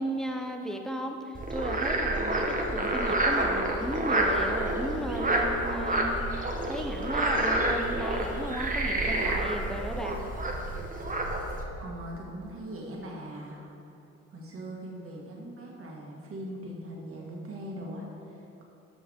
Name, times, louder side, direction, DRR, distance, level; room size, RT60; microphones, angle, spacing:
voice 1, 0.0-10.2, equal, ahead, 3 dB, 0.8 m, -35 dB
Frog, 1.3-11.6, right 1 dB, 25° right, 1.2 m, -28 dB
voice 2, 11.8-13.7 14.3-18.6, right 1 dB, 45° right, -2 dB, 2.0 m, -40 dB
13.0 x 6.2 x 3.6 m, 2.8 s
cardioid pair, 90°, 30 cm